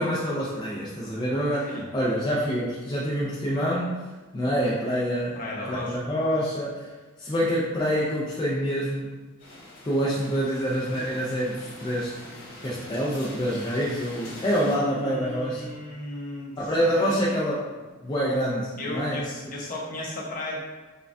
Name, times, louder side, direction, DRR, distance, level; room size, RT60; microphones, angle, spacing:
voice 1, 0.0-4.0 4.3-6.9 7.2-9.1 9.8-12.2 12.6-15.7 16.6-17.7 18.0-19.2, equal, 20° left, -7 dB, 0.5 m, -26 dB
voice 2, 5.3-6.0 14.7-17.2 18.8-20.6, left 1 dB, 40° left, -3 dB, 0.9 m, -36 dB
sound 1, 9.4-14.7, left 1 dB, 65° left, 1.3 m, -43 dB
5.4 x 2.3 x 2.5 m, 1.3 s
head